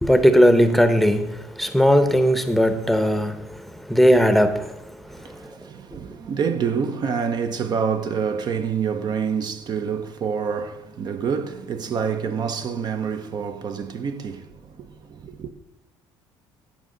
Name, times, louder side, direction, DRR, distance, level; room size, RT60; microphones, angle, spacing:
voice 1, 0.0-5.4, equal, ahead, 0.8 m, -18 dB
voice 2, 5.1-15.5, right 6 dB, 45° right, 0.7 m, -27 dB
15.0 x 5.1 x 3.8 m
supercardioid pair, 95°, 10 cm